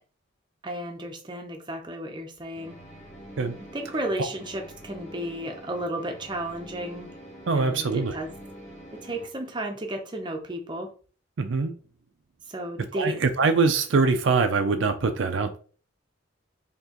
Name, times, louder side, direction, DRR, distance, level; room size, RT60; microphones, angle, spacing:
voice 1, 0.6-2.8 3.7-7.1 7.5-8.3 8.9-10.9 12.5-13.2, right 1 dB, 25° right, 4 dB, 0.6 m, -33 dB
sound 1, 2.5-9.3, right 1 dB, 35° left, 1.5 m, -45 dB
voice 2, 7.5-8.2 11.4-11.7 12.9-15.6, right 4 dB, 65° right, 8 dB, 0.5 m, -23 dB
4.4 x 2.9 x 2.9 m, 0.39 s
head